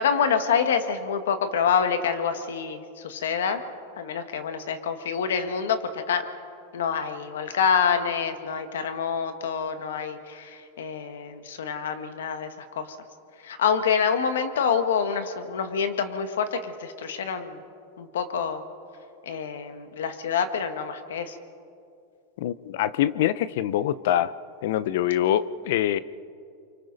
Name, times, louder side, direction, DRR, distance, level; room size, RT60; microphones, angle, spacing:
voice 1, 0.0-3.6 4.0-6.2 6.7-12.9 13.4-17.6 18.0-18.6 19.2-21.4, left 6 dB, 90° left, 8 dB, 1.7 m, -27 dB
voice 2, 22.4-24.3 24.6-26.0, left 12 dB, 70° left, 17 dB, 0.7 m, -24 dB
29.0 x 24.5 x 4.1 m, 2.5 s
supercardioid pair, 135°, 0 cm